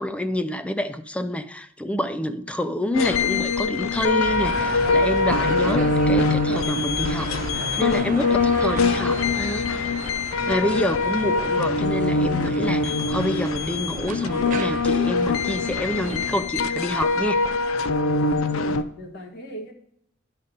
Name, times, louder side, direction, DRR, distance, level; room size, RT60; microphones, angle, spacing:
voice 1, 0.0-10.0 10.5-17.5, left 1 dB, 5° left, 0.4 m, -28 dB
sound 1, 2.9-18.8, left 3 dB, 90° left, 0.5 m, -23 dB
sound 2, 4.2-16.4, right 3 dB, 40° right, 0.7 m, -34 dB
voice 2, 18.5-19.7, equal, 55° left, 1.5 m, -38 dB
11.0 x 4.0 x 5.1 m
head